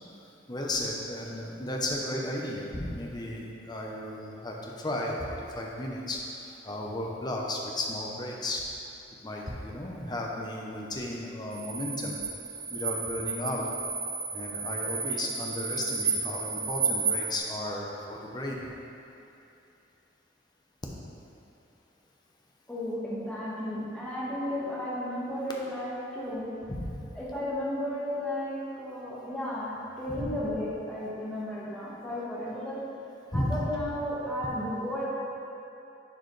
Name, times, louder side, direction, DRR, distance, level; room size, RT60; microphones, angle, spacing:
voice 1, 0.5-8.6 9.2-12.2 12.7-13.7 14.3-18.6 26.7-26.9 30.1-30.2 33.3-33.6, left 1 dB, 25° left, -2 dB, 0.8 m, -34 dB
sound 1, 11.5-17.4, right 4 dB, 15° right, 0.3 m, -32 dB
voice 2, 22.7-26.5 27.1-32.8 33.3-35.1, left 1 dB, 5° left, -8 dB, 1.5 m, -34 dB
10.0 x 4.6 x 3.3 m, 2.8 s
head